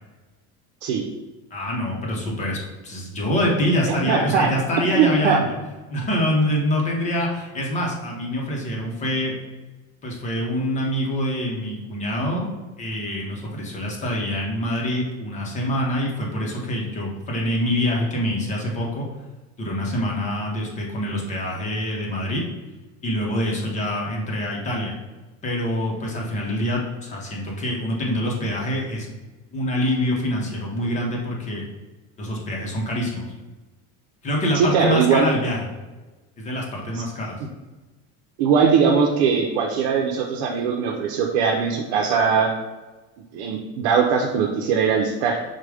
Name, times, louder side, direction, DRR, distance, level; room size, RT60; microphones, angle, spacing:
voice 1, 1.5-5.5 5.9-9.3 10.0-12.5 12.8-19.1 19.6-22.4 23.0-24.9 25.4-29.1 29.5-31.6 32.2-33.3 34.2-35.7 36.4-37.4, equal, 20° left, -1 dB, 0.7 m, -25 dB
voice 2, 3.9-4.5 4.9-5.4 34.5-35.3 36.9-37.0 38.4-42.5 43.3-45.4, right 6 dB, 90° right, 0 dB, 0.7 m, -20 dB
4.8 x 2.2 x 4.7 m, 1.2 s
cardioid pair, 175°, 34 cm